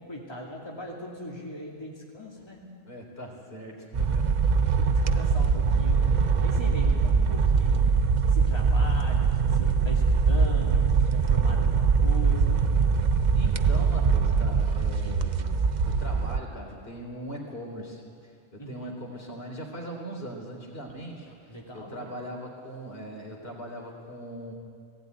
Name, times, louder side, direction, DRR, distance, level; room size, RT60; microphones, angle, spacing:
voice 1, 0.0-2.6 4.8-12.7 18.6-18.9 21.5-22.1, equal, 25° left, -3 dB, 2.6 m, -40 dB
voice 2, 2.9-4.3 4.6-4.8 6.8-7.0 13.3-24.5, right 1 dB, 60° left, 0 dB, 3.6 m, -40 dB
sound 1, 3.9-16.4, right 5 dB, 45° right, 0.8 m, -23 dB
18.0 x 16.0 x 9.4 m, 2.2 s
omnidirectional pair, 1.1 m